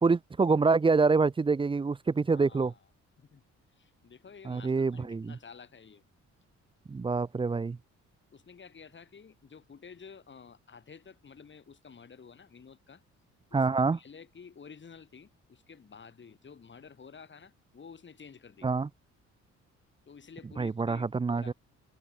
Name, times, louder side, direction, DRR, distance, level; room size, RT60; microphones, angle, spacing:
voice 1, 0.0-2.7 4.4-5.4 6.9-7.8 13.5-14.0 18.6-18.9 20.6-21.5, right 4 dB, 15° right, 0.5 m, -26 dB
voice 2, 2.3-2.8 3.2-3.4 3.8-6.0 8.3-13.0 13.5-18.7 20.1-21.5, left 6 dB, 40° left, 3.6 m, -51 dB
cardioid pair, 90°, 30 cm